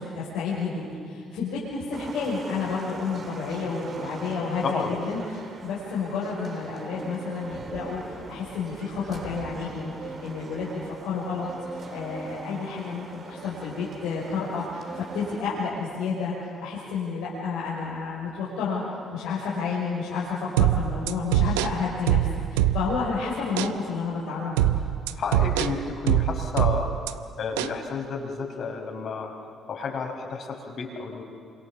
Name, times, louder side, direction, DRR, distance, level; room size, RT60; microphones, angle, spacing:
voice 1, 0.0-18.8 19.1-24.8, left 4 dB, 80° left, -7 dB, 5.7 m, -31 dB
sound 1, 1.9-15.4, right 3 dB, 50° right, 3.4 m, -41 dB
voice 2, 4.6-4.9 25.1-26.9 27.4-29.3 29.7-31.2, left 5 dB, 60° left, 2 dB, 5.1 m, -31 dB
sound 2, 20.6-23.1 23.6-23.8 24.6-27.1 27.6-27.8, right 12 dB, 85° right, 0.7 m, -23 dB
28.0 x 26.0 x 7.3 m, 2.4 s
hypercardioid pair, 50°, 0 cm